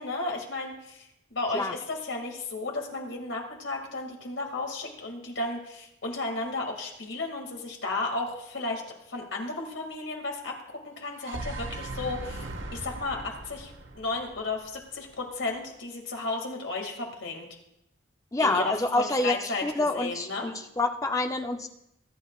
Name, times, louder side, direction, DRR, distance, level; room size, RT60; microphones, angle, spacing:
voice 1, 0.0-8.8 9.1-17.5 18.4-20.5, left 3 dB, 75° left, 2 dB, 2.3 m, -34 dB
sound 1, 11.0-15.1, right 2 dB, 75° right, 1.2 m, -39 dB
voice 2, 18.3-21.7, left 2 dB, 15° left, 5 dB, 0.7 m, -27 dB
20.0 x 10.0 x 2.4 m, 0.82 s
head